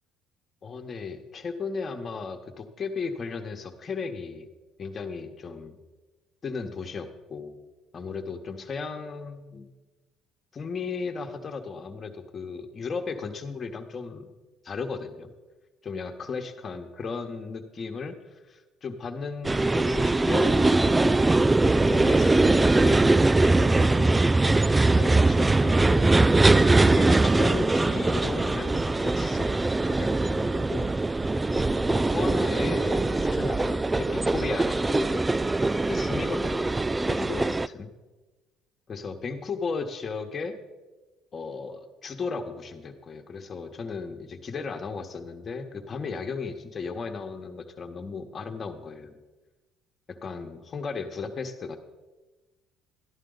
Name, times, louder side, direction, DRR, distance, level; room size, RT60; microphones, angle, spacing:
voice 1, 0.6-4.5 4.8-5.8 6.4-7.6 7.9-9.7 10.5-14.3 14.6-15.3 15.8-21.2 21.6-24.2 24.5-26.0 26.5-30.9 31.3-31.5 31.9-35.3 35.9-36.7 37.1-37.9 38.9-40.5 41.3-49.2 50.1-51.8, left 4 dB, 40° left, 4 dB, 1.3 m, -35 dB
sound 1, 19.4-37.7, right 2 dB, 20° right, 0.3 m, -22 dB
13.0 x 11.0 x 4.0 m, 1.2 s
supercardioid pair, 70°, 0 cm